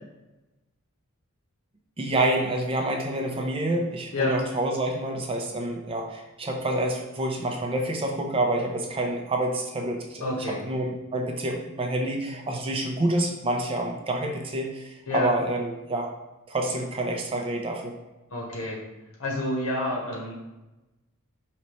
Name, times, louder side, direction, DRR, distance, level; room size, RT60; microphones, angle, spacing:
voice 1, 2.0-16.1 16.5-17.9, right 1 dB, 25° right, 2 dB, 0.5 m, -28 dB
voice 2, 10.2-10.6 15.1-15.3 18.3-18.8 19.2-20.3, left 1 dB, 65° left, -3 dB, 1.3 m, -28 dB
5.2 x 2.9 x 3.1 m, 1.0 s
head